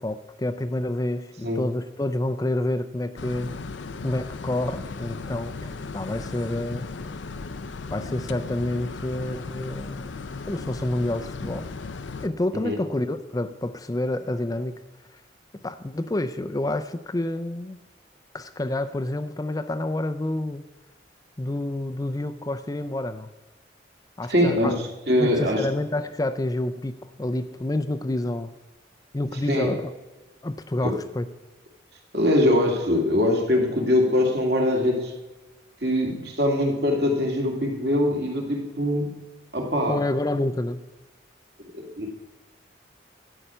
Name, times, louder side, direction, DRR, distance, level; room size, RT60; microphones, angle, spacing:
voice 1, 0.0-3.5 4.0-6.9 7.9-10.2 10.5-11.7 12.2-14.8 15.1-15.2 15.5-17.8 18.3-20.7 21.4-23.3 24.2-24.8 25.2-28.5 29.1-29.9 30.4-31.3 39.9-40.8, left 1 dB, 20° left, 9 dB, 0.4 m, -28 dB
sound 1, 3.2-12.3, left 4 dB, 85° left, 0.6 m, -36 dB
voice 2, 24.3-24.7 25.1-25.7 29.5-29.7 30.8-30.9 32.1-35.1 35.8-39.2 39.5-40.0 41.7-42.2, left 1 dB, 60° right, 2 dB, 2.2 m, -22 dB
12.5 x 9.0 x 5.6 m, 1.1 s
head